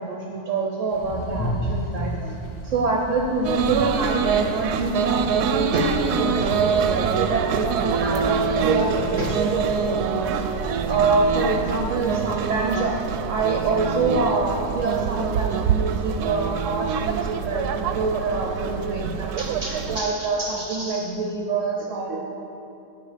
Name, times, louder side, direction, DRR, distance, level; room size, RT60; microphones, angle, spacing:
voice 1, 0.0-2.4 2.6-10.3 10.9-13.0 13.3-22.2, right 3 dB, 60° right, 0 dB, 1.0 m, -26 dB
sound 1, 0.9-12.4, equal, 30° left, 0.5 m, -35 dB
sound 2, 3.4-20.0, right 6 dB, 90° right, 1.1 m, -25 dB
16.0 x 5.5 x 5.0 m, 2.8 s
omnidirectional pair, 1.6 m